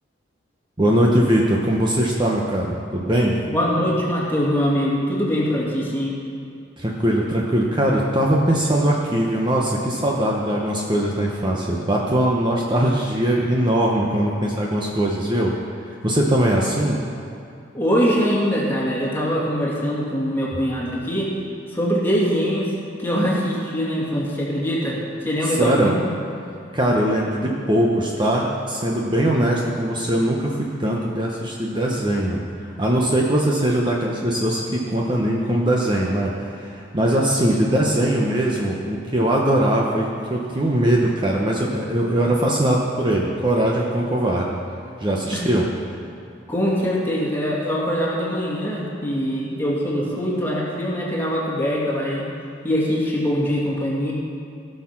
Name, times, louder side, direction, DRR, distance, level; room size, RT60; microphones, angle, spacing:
voice 1, 0.8-3.3 6.8-15.5 15.9-17.0 25.4-26.0 26.7-32.4 32.8-44.5 45.0-45.6, right 1 dB, 25° right, -2 dB, 1.0 m, -21 dB
voice 2, 3.5-6.1 17.7-21.3 21.7-22.7 23.0-26.0 45.3-45.4 46.5-52.3 52.6-54.1, equal, 10° left, -5 dB, 2.3 m, -23 dB
17.0 x 6.6 x 5.9 m, 2.5 s
head